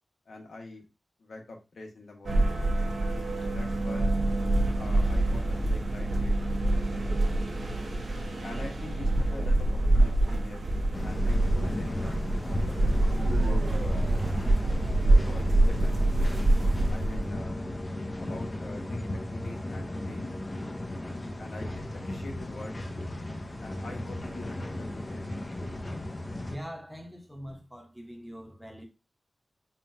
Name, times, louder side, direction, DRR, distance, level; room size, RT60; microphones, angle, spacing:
voice 1, 0.3-0.9 1.2-2.6 3.4-4.1 4.7-7.3 8.4-10.7 11.0-14.2 15.3-16.0 16.9-17.7 18.2-20.3 21.4-22.8 23.6-25.2, left 2 dB, 85° left, 1.1 m, -44 dB
sound 1, 2.2-17.4, right 1 dB, 85° right, 1.0 m, -26 dB
sound 2, 10.9-26.6, left 1 dB, 25° left, 0.5 m, -35 dB
sound 3, 13.1-16.1, right 3 dB, 45° right, 0.4 m, -37 dB
voice 2, 26.5-28.9, equal, ahead, 0.8 m, -43 dB
5.4 x 2.3 x 2.6 m
wide cardioid pair, 130°, 0 cm